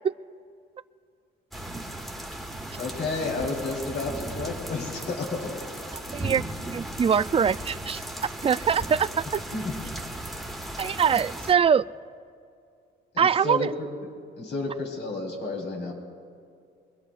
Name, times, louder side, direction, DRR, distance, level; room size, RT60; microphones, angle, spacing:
sound 1, 1.5-11.5, right 1 dB, ahead, 1.6 m, -36 dB
voice 1, 2.8-5.5 9.5-9.7 13.1-13.9 14.4-15.9, left 3 dB, 60° left, 0 dB, 3.9 m, -31 dB
voice 2, 6.1-6.4 6.7-8.0 8.4-9.4 10.8-11.8 13.2-13.7, right 7 dB, 30° right, 15 dB, 0.4 m, -23 dB
24.5 x 22.0 x 2.5 m, 2.3 s
cardioid pair, 90°, 20 cm